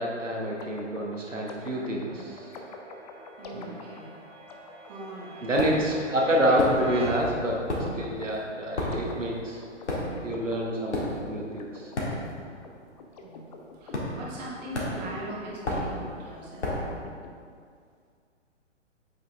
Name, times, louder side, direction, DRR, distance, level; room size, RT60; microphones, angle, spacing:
voice 1, 0.0-2.5 3.5-3.8 5.4-7.6 7.9-9.6 10.2-11.9, equal, 80° right, -2 dB, 1.3 m, -28 dB
sound 1, 0.6-17.3, left 3 dB, 35° left, 0.6 m, -47 dB
Clang Cinematic Reversed With Deep Kick, 2.0-7.9, right 3 dB, 15° right, 0.9 m, -44 dB
voice 2, 3.4-4.1 4.8-5.5 13.2-16.7, right 2 dB, 35° right, -4 dB, 1.6 m, -40 dB
sound 2, 5.6-6.0 6.6-7.2 7.5-12.6 12.9-13.2 13.9-14.4 14.7-17.0, left 1 dB, 65° left, 1.8 m, -32 dB
8.3 x 5.4 x 3.4 m, 2.1 s
figure-of-eight pair, 125°, 37 cm